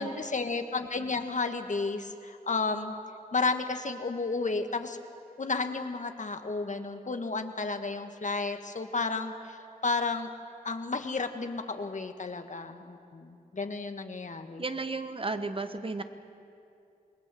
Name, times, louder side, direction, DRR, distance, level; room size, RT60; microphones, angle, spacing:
voice 1, 0.0-2.9 3.3-5.0 5.4-9.6 9.8-10.3 10.6-14.6, left 3 dB, 55° left, 7 dB, 1.5 m, -32 dB
voice 2, 14.6-16.0, right 3 dB, 40° right, 9 dB, 1.3 m, -33 dB
27.5 x 20.0 x 7.7 m, 2.5 s
wide cardioid pair, 70°, 15 cm